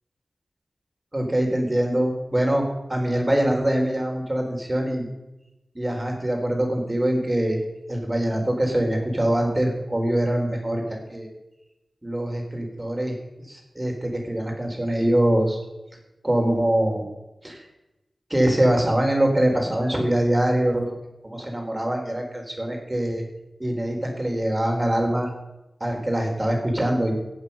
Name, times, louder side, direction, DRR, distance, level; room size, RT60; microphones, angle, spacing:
voice 1, 1.1-2.6 2.9-5.0 5.7-7.6 7.9-11.3 12.0-13.1 13.5-15.6 16.2-17.0 17.4-17.6 18.3-20.9 21.2-23.2 23.6-25.3 25.8-27.1, right 1 dB, 30° right, 2 dB, 4.0 m, -23 dB
16.0 x 8.1 x 5.6 m, 0.97 s
cardioid pair, 40°, 0 cm